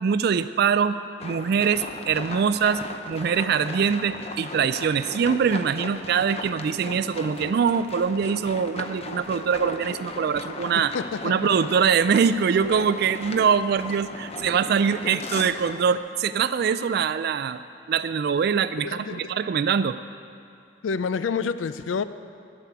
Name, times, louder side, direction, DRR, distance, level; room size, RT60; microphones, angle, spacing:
voice 1, 0.0-2.8 3.1-10.9 11.2-17.6 17.9-20.0, right 6 dB, 55° right, 13 dB, 0.3 m, -23 dB
sound 1, 1.2-16.0, left 3 dB, 35° left, 0.7 m, -37 dB
voice 2, 10.9-11.3 18.8-19.2 20.8-22.0, left 5 dB, 85° left, 13 dB, 0.4 m, -28 dB
11.5 x 7.2 x 9.6 m, 2.4 s
head